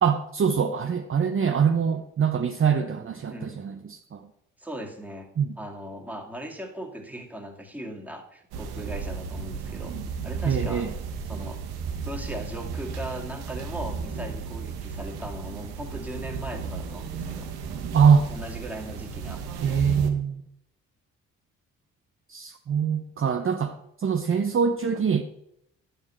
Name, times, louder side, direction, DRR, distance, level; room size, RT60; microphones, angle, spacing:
voice 1, 0.0-4.2 5.4-5.5 10.4-10.9 17.9-18.3 19.6-20.4 22.3-23.7 24.0-25.2, right 6 dB, 30° right, 6 dB, 0.8 m, -23 dB
voice 2, 3.3-3.6 4.6-5.3 5.6-10.0 10.2-10.9 11.3-11.6 12.0-17.5 18.3-19.9, equal, 5° right, 1 dB, 2.1 m, -38 dB
sound 1, 8.5-20.1, right 5 dB, 70° right, 1.2 m, -34 dB
11.0 x 6.5 x 4.3 m, 0.76 s
hypercardioid pair, 40°, 39 cm